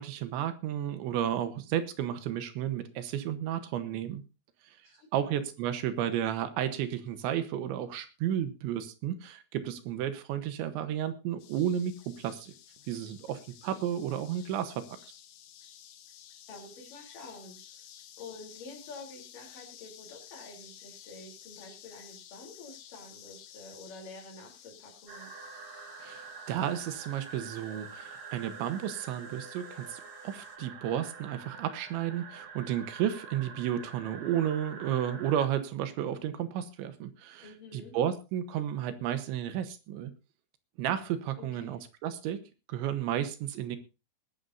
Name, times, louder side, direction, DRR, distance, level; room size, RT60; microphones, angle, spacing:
voice 1, 0.0-4.2 4.6-4.8 5.1-12.5 12.9-15.0 26.0-40.1 40.8-42.4 42.7-43.8, right 10 dB, 80° right, 10 dB, 3.4 m, -32 dB
voice 2, 4.8-5.4 16.5-17.8 18.2-25.3 37.4-38.0 41.4-41.8, left 3 dB, 50° left, 1 dB, 4.8 m, -48 dB
sound 1, 11.4-30.6, left 10 dB, 85° left, 3.9 m, -54 dB
sound 2, 25.1-35.5, right 4 dB, 50° right, 1.7 m, -46 dB
20.5 x 12.0 x 2.7 m, 0.30 s
omnidirectional pair, 5.3 m